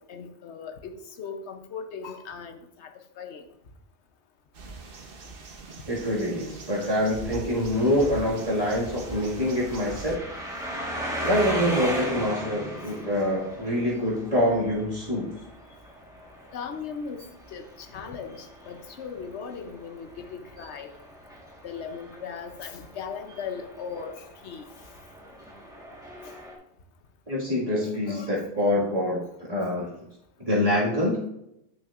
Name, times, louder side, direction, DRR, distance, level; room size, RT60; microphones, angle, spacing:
voice 1, 0.0-3.5 16.5-20.9 21.6-24.7 26.2-26.4 27.8-28.4, left 6 dB, 70° left, 7 dB, 1.0 m, -38 dB
sound 1, 4.5-10.2, right 3 dB, 55° right, 0.9 m, -42 dB
voice 2, 5.9-10.2 11.2-15.4 27.3-29.2 29.5-29.9 30.4-31.3, left 1 dB, 30° right, -6 dB, 2.0 m, -25 dB
sound 2, 7.7-26.5, right 1 dB, 5° right, 1.3 m, -38 dB
9.3 x 6.1 x 2.5 m, 0.81 s
omnidirectional pair, 1.2 m